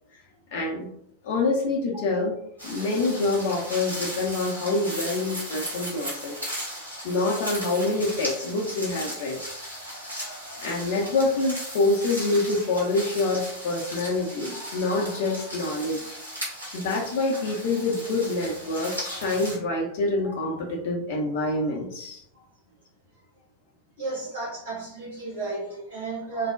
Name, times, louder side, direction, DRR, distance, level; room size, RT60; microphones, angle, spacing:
voice 1, 0.5-0.9 1.2-6.4 7.0-9.4 10.6-16.2 16.7-22.2, left 2 dB, 50° left, -1 dB, 0.5 m, -26 dB
sound 1, 2.6-19.6, equal, 85° right, 0.9 m, -36 dB
voice 2, 24.0-26.5, right 3 dB, 65° right, -7 dB, 1.3 m, -33 dB
3.1 x 2.1 x 2.4 m, 0.70 s
figure-of-eight pair, 90°, 0 cm